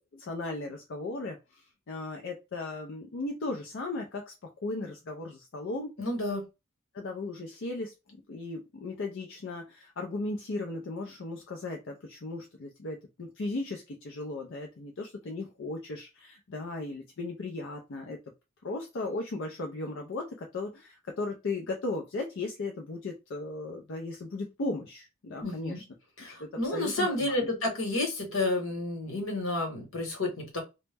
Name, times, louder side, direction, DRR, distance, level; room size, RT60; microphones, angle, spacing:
voice 1, 0.1-5.9 6.9-7.9 8.3-18.2 18.6-25.8 26.4-27.5, left 2 dB, 65° left, 2 dB, 0.4 m, -36 dB
voice 2, 6.0-6.5 25.4-25.8 26.2-30.6, left 2 dB, 80° left, 2 dB, 1.1 m, -31 dB
2.1 x 2.1 x 3.3 m, 0.25 s
head